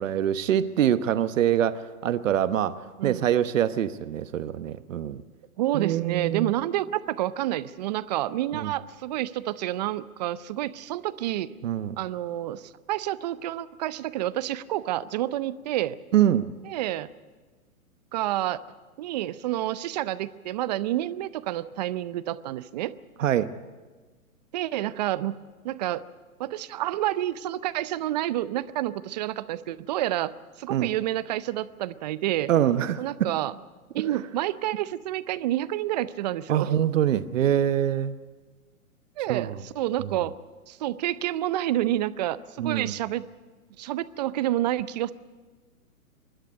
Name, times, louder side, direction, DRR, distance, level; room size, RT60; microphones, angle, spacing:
voice 1, 0.0-5.2 5.7-6.5 8.5-8.7 11.6-12.0 16.1-16.5 23.2-23.5 30.7-30.9 32.5-33.3 36.5-38.1 39.3-39.6 40.0-40.1 42.6-42.9, right 10 dB, 60° right, 12 dB, 1.0 m, -24 dB
voice 2, 5.6-11.5 12.0-16.0 16.7-17.1 18.1-18.6 19.0-22.9 24.5-25.4 25.6-26.0 26.4-32.5 33.0-33.5 33.9-36.7 39.2-40.3 40.7-43.2 43.8-45.1, right 14 dB, 30° right, 16 dB, 0.5 m, -29 dB
25.5 x 11.5 x 9.1 m, 1.4 s
hypercardioid pair, 135°, 44 cm